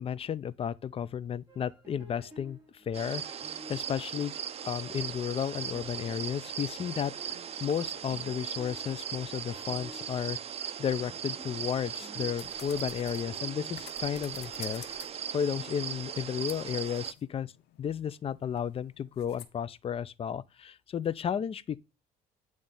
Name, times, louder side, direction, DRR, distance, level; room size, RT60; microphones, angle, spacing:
voice 1, 0.0-4.3 4.6-10.4 10.8-15.0 15.3-17.5 17.8-21.8, left 8 dB, 35° left, 0.4 m, -33 dB
sound 1, 1.5-16.8, right 1 dB, 15° right, 3.5 m, -54 dB
sound 2, 2.9-17.1, right 8 dB, 35° right, 0.5 m, -39 dB
sound 3, 12.4-15.3 15.8-19.5, left 11 dB, 75° left, 0.9 m, -52 dB
8.8 x 3.2 x 5.4 m
cardioid pair, 110°, 17 cm